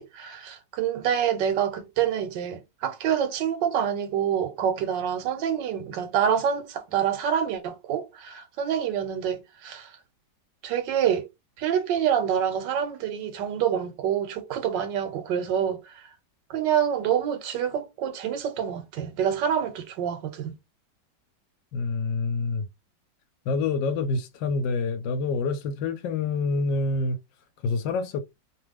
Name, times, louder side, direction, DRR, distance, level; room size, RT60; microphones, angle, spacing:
voice 1, 0.0-9.9 10.6-11.3 11.6-16.1 16.5-20.5, right 9 dB, 90° right, 1.3 m, -27 dB
voice 2, 21.7-22.6 23.5-27.2 27.6-28.2, left 3 dB, 85° left, 1.3 m, -27 dB
3.0 x 2.3 x 3.3 m
omnidirectional pair, 1.9 m